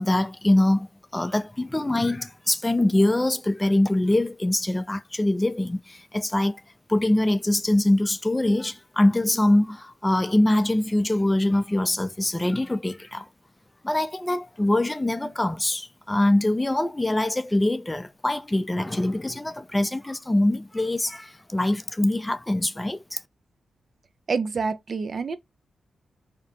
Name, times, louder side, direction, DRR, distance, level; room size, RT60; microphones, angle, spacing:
voice 1, 0.0-6.6 6.9-13.3 13.8-23.2, left 1 dB, 15° left, 0.3 m, -23 dB
voice 2, 24.3-25.3, right 4 dB, 55° right, 0.4 m, -27 dB
2.8 x 2.1 x 2.7 m
cardioid pair, 55°, 0 cm